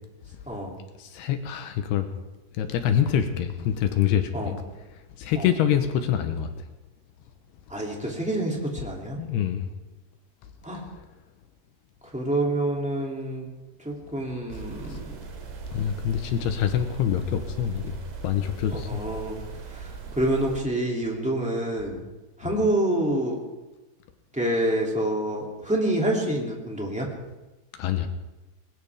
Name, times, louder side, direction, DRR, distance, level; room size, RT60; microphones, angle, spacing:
voice 1, 1.0-2.1 2.6-4.6 5.2-6.5 9.2-9.7 14.9-15.0 15.7-17.9 18.2-19.0 27.8-28.1, left 9 dB, 80° left, 7 dB, 2.9 m, -25 dB
voice 2, 7.7-9.2 10.6-10.8 12.1-13.5 13.8-15.0 18.7-19.4 19.7-19.9 20.1-22.0 22.4-23.4 24.3-27.1, right 1 dB, ahead, -2 dB, 1.7 m, -27 dB
sound 1, 14.5-20.6, right 5 dB, 65° right, 4.0 m, -39 dB
20.5 x 19.0 x 3.6 m, 1.1 s
omnidirectional pair, 4.9 m